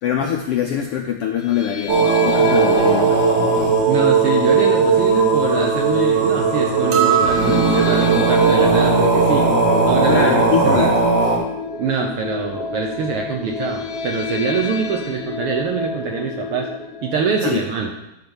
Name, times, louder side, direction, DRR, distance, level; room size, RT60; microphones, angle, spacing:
voice 1, 0.0-3.2 10.0-10.9 17.4-17.6, left 9 dB, 75° left, 2 dB, 1.3 m, -23 dB
sound 1, 1.4-17.5, left 4 dB, 50° left, 0.7 m, -29 dB
sound 2, 1.9-11.4, right 4 dB, 30° right, 1.5 m, -17 dB
voice 2, 3.9-9.5 9.8-10.9 11.8-16.7 17.0-17.9, right 6 dB, 70° right, 2 dB, 1.4 m, -24 dB
sound 3, 6.9-8.3, right 8 dB, 85° right, 2.5 m, -22 dB
10.5 x 4.2 x 7.2 m, 0.89 s
omnidirectional pair, 3.3 m